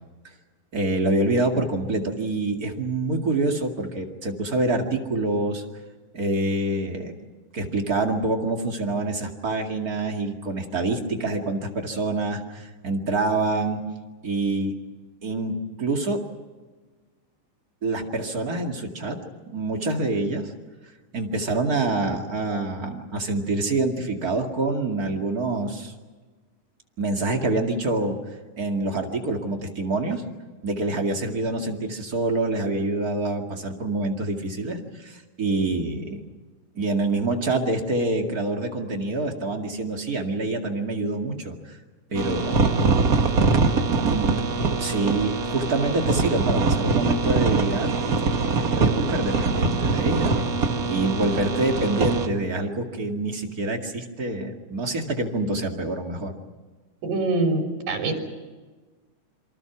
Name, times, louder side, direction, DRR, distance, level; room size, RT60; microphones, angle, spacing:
voice 1, 0.7-5.6 6.1-7.1 7.5-13.8 14.2-14.7 15.2-16.2 17.8-19.2 19.5-20.5 21.1-25.9 27.0-28.2 28.6-30.2 30.6-36.2 36.7-41.8 42.1-42.7 44.0-44.3 44.8-47.9 48.5-50.3 50.9-56.3, right 2 dB, 30° right, 2 dB, 2.2 m, -26 dB
sound 1, 42.2-52.3, right 4 dB, 55° right, 0.9 m, -23 dB
voice 2, 57.0-58.2, right 2 dB, 85° right, 2 dB, 5.2 m, -24 dB
27.5 x 25.0 x 6.0 m, 1.3 s
omnidirectional pair, 3.9 m